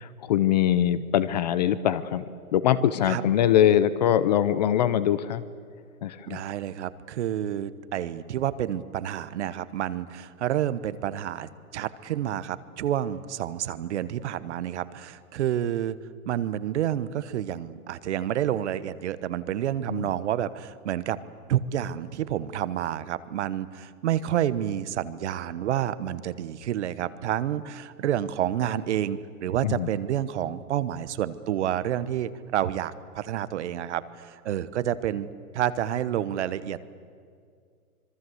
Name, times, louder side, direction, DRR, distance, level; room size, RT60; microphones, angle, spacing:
voice 1, 0.0-2.2 2.5-5.4 6.0-6.4 19.9-20.1 29.6-29.9, left 10 dB, 30° left, 15 dB, 0.6 m, -23 dB
voice 2, 6.3-16.0 16.3-21.2 21.5-35.3 35.5-36.8, right 11 dB, 50° right, 15 dB, 1.1 m, -29 dB
26.0 x 22.5 x 7.9 m, 2.2 s
hypercardioid pair, 145°, 44 cm